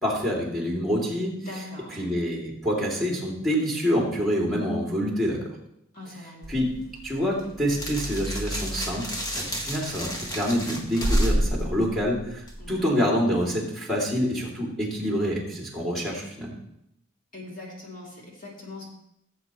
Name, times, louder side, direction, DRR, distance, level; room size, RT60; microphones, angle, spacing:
voice 1, 0.0-1.4 1.9-5.4 6.5-6.7 7.0-9.0 9.3-16.5, equal, ahead, -3 dB, 2.6 m, -26 dB
voice 2, 1.5-2.0 5.9-6.5 12.6-13.1 17.3-18.9, left 2 dB, 40° left, -4 dB, 2.6 m, -41 dB
sound 1, 6.4-12.7, equal, 20° left, 1.2 m, -29 dB
16.5 x 8.0 x 3.1 m, 0.78 s
head